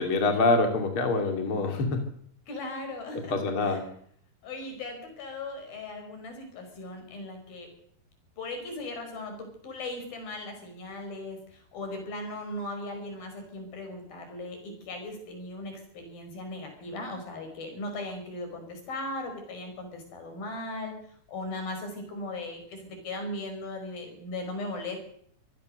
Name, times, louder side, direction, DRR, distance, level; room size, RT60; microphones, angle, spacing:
voice 1, 0.0-2.0 3.3-3.8, left 3 dB, 35° left, 4 dB, 3.1 m, -25 dB
voice 2, 2.5-3.3 3.6-3.8 4.4-7.7 8.4-20.9 21.3-25.0, left 2 dB, 60° left, 5 dB, 7.0 m, -38 dB
25.5 x 16.5 x 6.6 m, 0.64 s
omnidirectional pair, 4.7 m